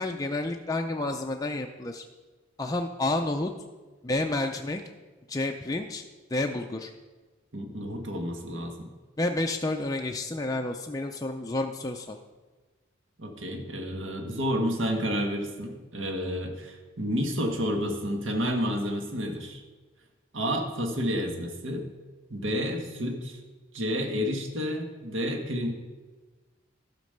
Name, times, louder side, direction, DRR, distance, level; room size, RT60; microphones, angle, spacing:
voice 1, 0.0-2.0 2.6-3.5 4.0-4.8 5.3-6.0 6.3-6.9 9.2-12.2, left 2 dB, 15° left, 3 dB, 0.4 m, -30 dB
voice 2, 7.5-8.9 13.2-19.6 20.3-21.9 22.3-23.4 23.7-25.7, equal, 70° right, 3 dB, 1.5 m, -30 dB
12.5 x 5.2 x 6.6 m, 1.3 s
head